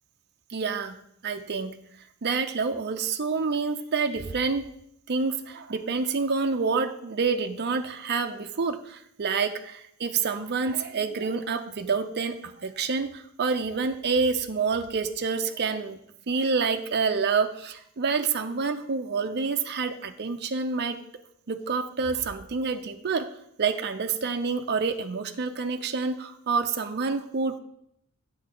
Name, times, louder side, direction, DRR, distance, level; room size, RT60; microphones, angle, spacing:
voice 1, 0.5-1.0 1.2-1.7 2.2-4.7 5.1-16.0 16.3-21.0 21.5-23.3 23.6-27.6, right 4 dB, 45° right, 7 dB, 0.5 m, -28 dB
8.5 x 6.9 x 3.8 m, 0.72 s
head